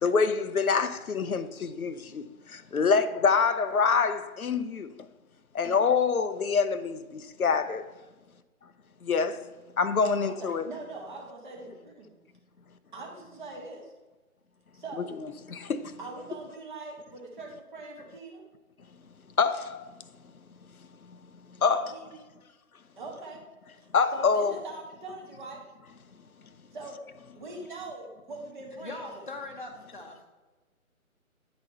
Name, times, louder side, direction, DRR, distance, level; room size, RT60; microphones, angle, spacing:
voice 1, 0.0-4.9 5.5-7.8 9.0-9.4 9.8-10.7 15.5-15.9 19.4-19.9 21.6-21.8 23.9-24.5, left 5 dB, 80° left, 0.6 m, -26 dB
voice 2, 10.4-12.1 12.9-13.9 14.7-15.1 16.0-18.4 21.6-22.2 23.0-23.4 24.1-25.6 26.7-27.0 27.3-29.3, right 3 dB, 35° right, 1.6 m, -42 dB
voice 3, 28.8-30.3, left 2 dB, 35° left, 0.9 m, -41 dB
9.6 x 4.0 x 4.3 m
figure-of-eight pair, 145°, 43 cm